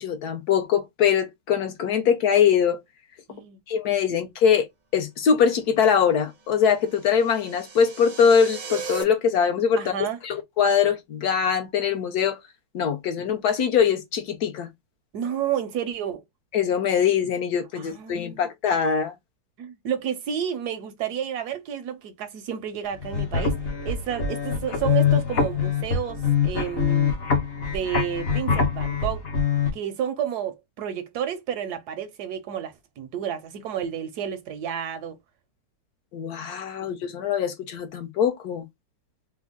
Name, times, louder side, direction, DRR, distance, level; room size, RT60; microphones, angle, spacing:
voice 1, 0.0-2.8 3.7-4.7 4.9-9.9 10.2-12.4 12.7-14.7 16.5-19.1 36.1-38.6, left 7 dB, 70° left, 1.1 m, -22 dB
voice 2, 3.3-3.6 9.8-10.2 15.1-16.2 17.8-18.5 19.6-23.5 23.8-27.1 27.6-29.2 29.7-35.2, right 9 dB, 75° right, 1.0 m, -31 dB
sound 1, 6.5-9.0, right 5 dB, 55° right, 0.5 m, -37 dB
sound 2, 22.9-29.7, left 6 dB, 50° left, 0.8 m, -24 dB
3.5 x 2.1 x 3.5 m
omnidirectional pair, 1.9 m